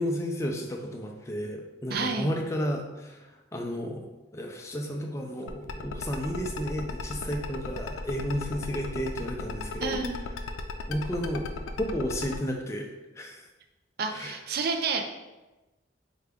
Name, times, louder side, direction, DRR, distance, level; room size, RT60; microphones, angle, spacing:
voice 1, 0.0-3.2 3.5-4.1 4.3-10.0 10.9-11.5 11.8-12.9 13.2-13.4 14.1-14.4, equal, 15° left, 1 dB, 0.4 m, -32 dB
voice 2, 1.9-2.3 9.8-10.2 14.0-15.2, right 4 dB, 50° right, 5 dB, 0.4 m, -30 dB
sound 1, 5.5-12.4, left 5 dB, 90° left, 0.4 m, -36 dB
4.8 x 2.2 x 3.4 m, 1.1 s
head